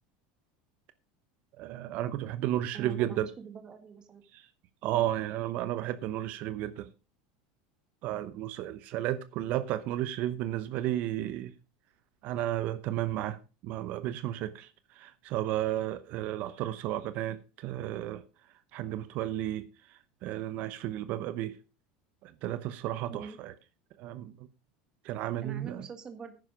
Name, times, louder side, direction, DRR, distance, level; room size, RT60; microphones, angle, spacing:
voice 1, 1.6-3.3 4.3-4.5 4.8-6.9 8.0-11.5 12.2-18.2 18.7-19.6 19.9-21.6 22.2-23.5 24.0-24.4 25.0-25.8, right 13 dB, 50° right, 0.8 m, -33 dB
voice 2, 2.7-4.2 23.1-23.4 25.4-26.3, right 6 dB, 20° right, 1.5 m, -44 dB
11.0 x 9.7 x 5.0 m
supercardioid pair, 150°, 4 cm